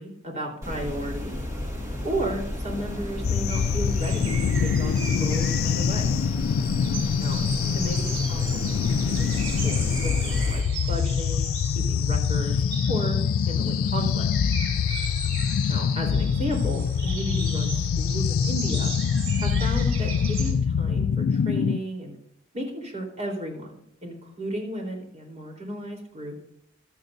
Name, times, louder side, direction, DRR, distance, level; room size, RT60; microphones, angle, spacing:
voice 1, 0.0-1.4 2.0-4.4 4.6-6.1 7.2-7.4 7.7-8.8 9.0-9.4 9.6-12.6 12.9-14.3 15.7-19.0 19.4-22.2 22.5-26.3, right 1 dB, 35° right, 1 dB, 3.8 m, -34 dB
sound 1, 0.6-10.6, left 1 dB, 15° right, 2.0 m, -33 dB
sound 2, 3.2-21.8, left 7 dB, 75° left, 0.3 m, -25 dB
sound 3, 3.5-20.5, right 4 dB, 75° right, 3.6 m, -38 dB
15.5 x 12.0 x 2.7 m, 0.72 s
head